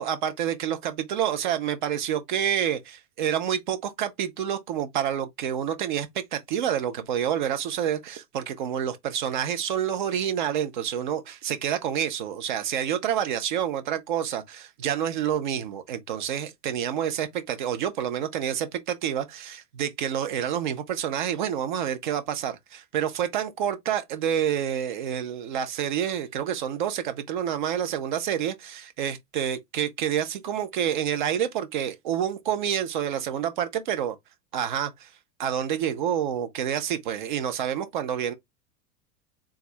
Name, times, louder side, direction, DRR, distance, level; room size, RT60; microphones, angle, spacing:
voice 1, 0.0-34.2 34.5-35.1 35.4-38.3, right 9 dB, 30° right, 0.4 m, -28 dB
3.5 x 2.5 x 3.1 m
figure-of-eight pair, 95°, 49 cm